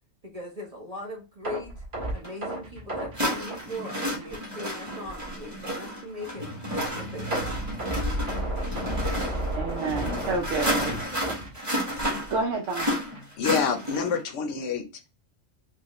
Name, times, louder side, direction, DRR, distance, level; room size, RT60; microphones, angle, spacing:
voice 1, 0.2-1.7 2.1-6.5 6.9-7.7, left 1 dB, 30° right, -1 dB, 0.9 m, -39 dB
sound 1, 1.4-4.5 4.8-5.0 5.4-5.5 7.3-12.2 12.5-12.7 13.1-13.2, right 1 dB, 55° right, 2.2 m, -33 dB
sound 2, 2.2-2.3 3.1-14.2, equal, 15° right, 1.2 m, -32 dB
sound 3, 3.8-3.9 5.1-5.5 6.3-11.0, left 2 dB, 55° left, 0.6 m, -39 dB
voice 2, 9.5-11.0 12.3-13.0, right 3 dB, 70° right, 2 dB, 1.0 m, -29 dB
voice 3, 13.4-15.1, left 6 dB, 70° left, 6 dB, 1.1 m, -27 dB
4.8 x 2.3 x 3.0 m, 0.29 s
omnidirectional pair, 1.3 m